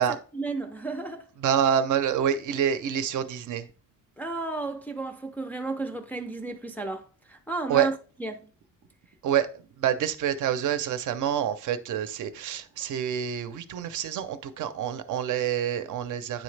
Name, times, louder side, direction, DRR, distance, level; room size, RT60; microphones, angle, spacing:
voice 1, 0.3-1.3 4.2-7.9 8.2-8.5, right 3 dB, 5° left, 0.4 m, -33 dB
voice 2, 1.4-3.7 7.7-7.9 9.2-16.4, right 9 dB, 65° right, 0.6 m, -27 dB
9.2 x 3.9 x 3.2 m
cardioid pair, 175°, 33 cm